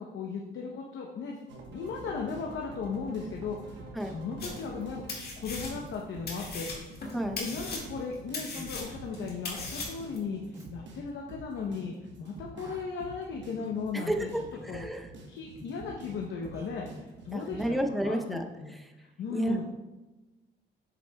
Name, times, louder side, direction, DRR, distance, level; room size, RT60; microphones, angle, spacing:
voice 1, 0.0-1.4 1.7-5.0 5.4-6.9 7.4-14.3 14.7-14.9 15.3-18.7 19.0-19.6, left 5 dB, 70° left, 0 dB, 0.7 m, -37 dB
sound 1, 1.5-17.7, right 2 dB, 65° right, 1.1 m, -47 dB
sound 2, 4.4-4.8 5.1-6.0 6.3-10.2, left 3 dB, 50° left, 1.8 m, -38 dB
Human voice, 7.5-7.8 8.5-8.8 9.5-9.7 10.5-10.7 11.5-11.7 12.5-12.9 13.6-13.8 14.5-14.8 15.5-15.7 16.5-16.7, right 1 dB, 15° right, 1.2 m, -48 dB
voice 2, 14.6-15.0 17.3-18.4 19.3-19.6, right 1 dB, ahead, 3 dB, 0.6 m, -30 dB
7.4 x 6.4 x 2.2 m, 1.1 s
cardioid pair, 90°, 20 cm